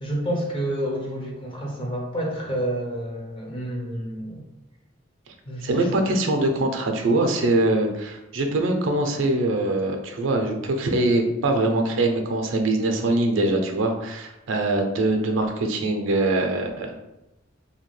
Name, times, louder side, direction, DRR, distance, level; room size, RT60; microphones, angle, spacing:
voice 1, 0.0-4.4 5.5-6.2, right 1 dB, 25° left, -1 dB, 0.7 m, -29 dB
voice 2, 5.6-16.9, right 2 dB, 70° right, 4 dB, 0.5 m, -23 dB
2.8 x 2.2 x 3.1 m, 0.93 s
head